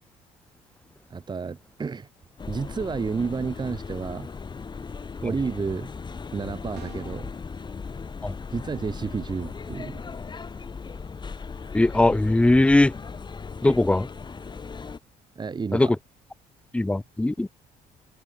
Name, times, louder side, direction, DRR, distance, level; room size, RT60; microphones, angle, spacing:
voice 1, 1.1-2.1 2.5-4.3 5.2-5.9 6.3-7.3 8.5-10.0 15.4-15.9, right 5 dB, 25° right, 1.7 m, -31 dB
sound 1, 2.4-15.0, left 5 dB, 25° left, 2.1 m, -37 dB
sound 2, 6.7-7.3, right 18 dB, 85° right, 3.8 m, -46 dB
voice 2, 11.7-12.9 13.6-14.1 15.7-15.9 16.7-17.5, left 2 dB, 5° left, 0.8 m, -20 dB
cardioid pair, 110°, 17 cm